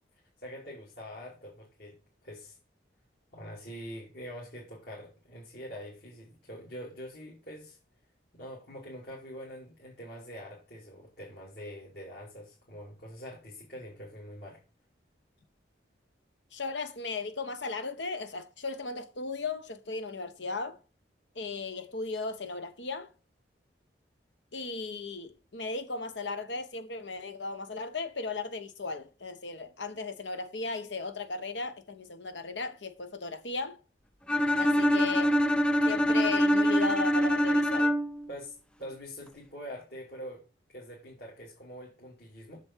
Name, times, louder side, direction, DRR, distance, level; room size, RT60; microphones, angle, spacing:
voice 1, 0.4-2.6 3.3-7.8 8.3-14.6 38.3-40.4 40.7-42.6, equal, 60° left, 2.9 m, -44 dB
voice 2, 16.5-20.8 21.3-23.1 24.5-33.8 34.6-35.3 35.8-37.9, left 3 dB, 80° left, 1.2 m, -36 dB
Bowed string instrument, 34.3-38.3, equal, 5° left, 0.3 m, -24 dB
7.2 x 7.1 x 4.6 m
head